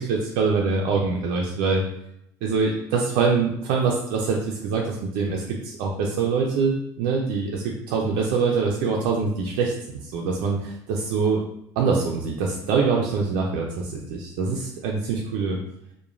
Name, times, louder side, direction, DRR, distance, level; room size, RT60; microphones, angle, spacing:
voice 1, 0.0-1.8 2.4-9.7 10.0-11.4 11.8-15.6, right 4 dB, 75° right, -1 dB, 0.4 m, -24 dB
2.9 x 2.1 x 2.4 m, 0.78 s
cardioid pair, 115°, 9 cm